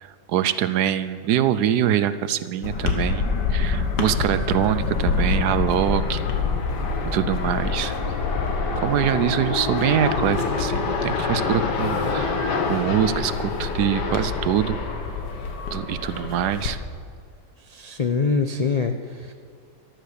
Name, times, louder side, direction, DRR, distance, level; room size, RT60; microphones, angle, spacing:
voice 1, 0.0-6.2 7.1-7.9 8.8-14.8 15.7-16.8, right 10 dB, 80° right, 13 dB, 1.2 m, -24 dB
sound 1, 2.6-16.7, left 4 dB, 90° left, 2.0 m, -25 dB
voice 2, 17.7-19.3, left 4 dB, 70° left, 6 dB, 0.3 m, -24 dB
13.5 x 12.5 x 6.6 m, 2.1 s
omnidirectional pair, 1.8 m